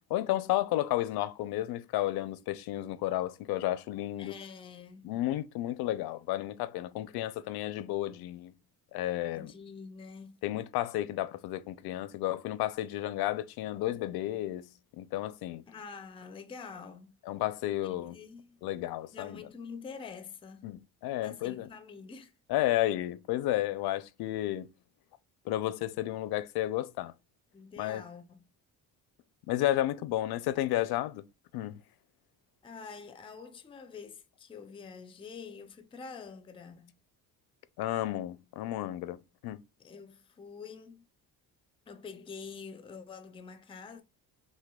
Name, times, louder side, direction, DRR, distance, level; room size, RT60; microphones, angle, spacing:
voice 1, 0.1-4.3 5.0-8.5 8.9-9.5 10.4-14.7 15.0-15.6 17.3-18.2 18.6-19.4 20.6-21.7 22.5-24.7 25.5-27.1 27.8-28.0 29.5-31.2 31.5-31.8 37.8-39.2 39.4-39.6, left 14 dB, 80° left, 0.5 m, -32 dB
voice 2, 4.2-5.1 9.3-10.4 15.7-17.1 17.8-18.6 19.1-20.7 21.2-22.3 27.5-28.5 32.6-36.9 39.8-41.0 41.9-44.0, left 5 dB, 15° left, 0.4 m, -46 dB
6.1 x 2.2 x 2.2 m
cardioid pair, 140°, 37 cm